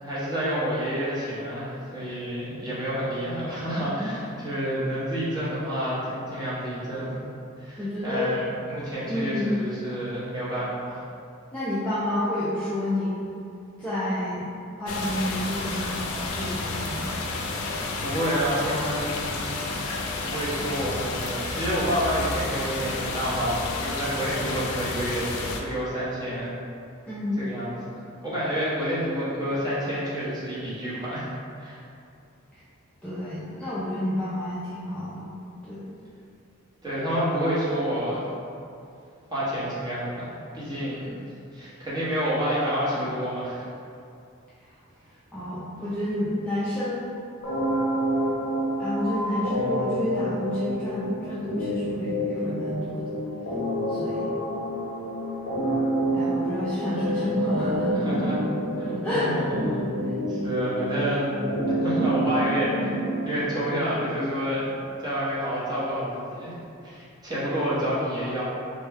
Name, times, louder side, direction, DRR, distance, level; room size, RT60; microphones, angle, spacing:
voice 1, 0.0-7.2 7.6-11.0 18.0-19.6 20.2-25.3 25.6-26.5 27.4-31.3 31.6-31.8 36.8-38.2 39.3-40.3 40.5-41.2 41.5-43.7 57.9-58.4 58.7-61.5 61.8-66.6 66.8-68.4, equal, 20° right, -10 dB, 0.9 m, -29 dB
voice 2, 7.8-8.4 9.1-9.6 11.5-13.2 13.8-16.1 16.4-17.3 27.1-27.5 33.0-35.3 35.6-35.9 45.3-47.1 48.8-53.2 53.9-54.4 56.1-58.1 59.0-59.3, left 1 dB, 5° left, -11 dB, 0.4 m, -29 dB
sound 1, 14.9-25.6, left 3 dB, 85° left, 0.4 m, -31 dB
sound 2, 47.4-63.4, right 1 dB, 60° left, 0.7 m, -28 dB
3.3 x 2.1 x 3.4 m, 2.5 s
head